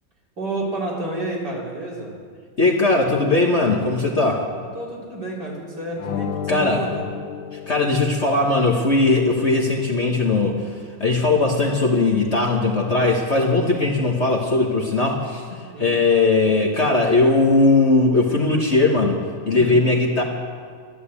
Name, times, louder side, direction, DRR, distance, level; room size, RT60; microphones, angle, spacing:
voice 1, 0.4-2.2 4.7-7.0 15.7-16.0 19.5-19.8, right 2 dB, 60° right, -4 dB, 4.1 m, -30 dB
voice 2, 2.6-4.4 6.5-6.8 7.5-10.6 11.0-19.2 19.5-20.2, left 3 dB, 35° left, 0 dB, 1.5 m, -19 dB
sound 1, 6.0-8.7, left 8 dB, 90° left, 1.7 m, -32 dB
12.5 x 12.0 x 8.4 m, 2.2 s
omnidirectional pair, 2.1 m